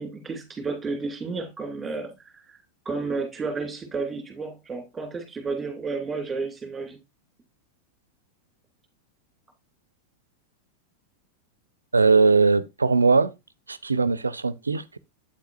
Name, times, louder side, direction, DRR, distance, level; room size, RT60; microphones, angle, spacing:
voice 1, 0.0-2.1 2.5-2.6 2.8-7.0, right 4 dB, 15° right, 2.9 m, -31 dB
voice 2, 11.9-13.3 13.7-15.0, right 4 dB, 80° right, 0.5 m, -20 dB
8.6 x 8.1 x 2.6 m
figure-of-eight pair, 90°, 0 cm